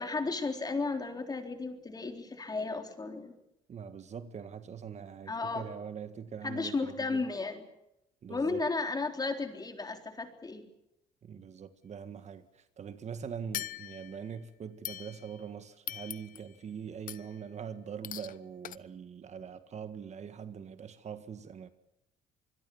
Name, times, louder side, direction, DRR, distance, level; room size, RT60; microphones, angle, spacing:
voice 1, 0.0-3.3 5.3-5.6 6.4-7.6 8.3-10.7, left 3 dB, 25° left, 3.8 m, -34 dB
voice 2, 3.7-7.2 8.2-8.6 11.2-21.7, right 7 dB, 40° right, 1.7 m, -43 dB
sound 1, 13.5-14.3 14.8-15.5 15.9-16.6 17.1-17.4 18.0-18.4 18.6-18.8, left 11 dB, 55° left, 0.9 m, -41 dB
26.0 x 21.5 x 7.1 m
cardioid pair, 110°, 17 cm